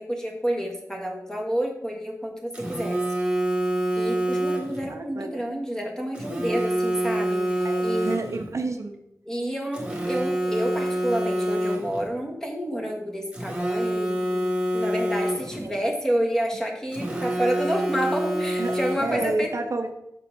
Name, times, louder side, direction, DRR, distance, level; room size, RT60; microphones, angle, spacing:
voice 1, 0.0-3.0 3.9-8.1 9.3-14.5 14.7-19.5, equal, 10° left, 0 dB, 1.4 m, -29 dB
Telephone, 2.5-4.9 6.1-8.5 9.7-12.1 13.3-15.7 16.9-19.3, right 1 dB, 20° right, 1.4 m, -27 dB
voice 2, 4.9-5.4 7.6-9.0 15.6-15.7 18.6-18.7 19.0-19.9, right 2 dB, 55° right, 5 dB, 0.6 m, -29 dB
6.1 x 4.3 x 5.2 m, 0.81 s
wide cardioid pair, 80°, 6 cm